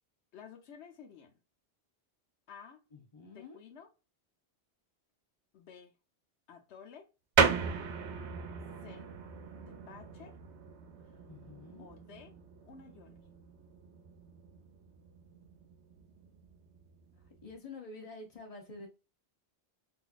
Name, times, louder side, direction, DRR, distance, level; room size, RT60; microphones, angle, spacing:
voice 1, 0.3-1.3 2.5-2.8 3.3-3.9 5.5-5.9 6.5-7.1 8.8-9.1 9.7-10.4 11.0-11.2 11.8-12.3 12.6-13.2, left 6 dB, 80° left, 1.0 m, -52 dB
voice 2, 2.9-3.6 11.3-11.9 17.4-18.9, left 3 dB, 35° left, 1.0 m, -48 dB
sound 1, 7.4-17.5, right 6 dB, 85° right, 0.9 m, -36 dB
3.9 x 2.7 x 2.3 m
omnidirectional pair, 1.1 m